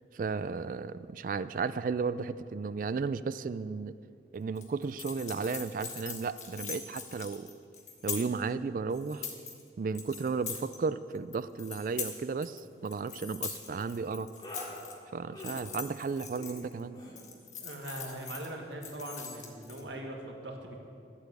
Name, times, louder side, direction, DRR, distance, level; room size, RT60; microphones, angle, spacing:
voice 1, 0.1-3.9 4.3-7.5 8.0-9.3 9.8-14.3 15.1-17.0, right 4 dB, 50° right, 15 dB, 0.3 m, -34 dB
sound 1, 4.6-8.4 8.9-9.6 9.9-10.8 11.1-12.6 12.9-14.9 15.4-16.8 17.2-18.5 18.8-19.8, left 7 dB, 40° left, 1.4 m, -42 dB
sound 2, 11.7-11.9 12.2-12.5 13.6-13.8 14.4-14.7 15.3-15.6 16.3-16.6 16.9-17.1, left 1 dB, 25° left, 2.6 m, -46 dB
voice 2, 17.6-20.8, right 1 dB, 85° right, 1 dB, 1.7 m, -41 dB
11.5 x 8.1 x 8.1 m, 2.4 s
head